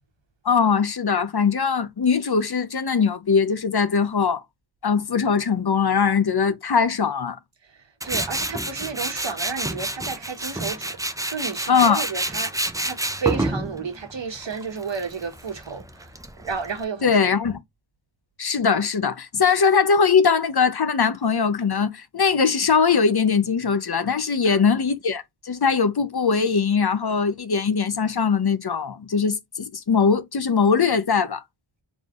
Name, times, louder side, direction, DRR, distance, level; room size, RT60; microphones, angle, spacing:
voice 1, 0.4-4.4 4.8-7.4 11.7-12.0 17.0-17.6 18.4-31.4, left 5 dB, 50° left, 0.7 m, -21 dB
Tools, 8.0-16.8, right 1 dB, 5° right, 0.6 m, -29 dB
voice 2, 8.0-11.0 11.3-16.1 16.4-17.2 24.4-24.6, right 5 dB, 60° right, 1.2 m, -31 dB
4.1 x 3.3 x 2.4 m
wide cardioid pair, 65°, 49 cm